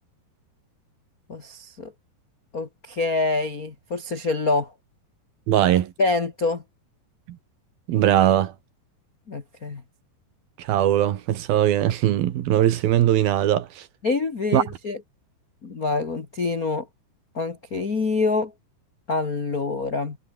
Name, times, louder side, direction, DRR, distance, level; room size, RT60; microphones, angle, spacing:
voice 1, 1.3-1.9 2.5-4.7 6.0-6.6 9.3-9.8 14.0-15.0 15.6-16.9 17.3-18.5 19.1-20.2, left 3 dB, 60° left, 0.9 m, -26 dB
voice 2, 5.5-5.9 7.9-8.5 10.6-13.9 14.5-14.6, right 12 dB, 65° right, 3.0 m, -20 dB
omnidirectional pair, 5.0 m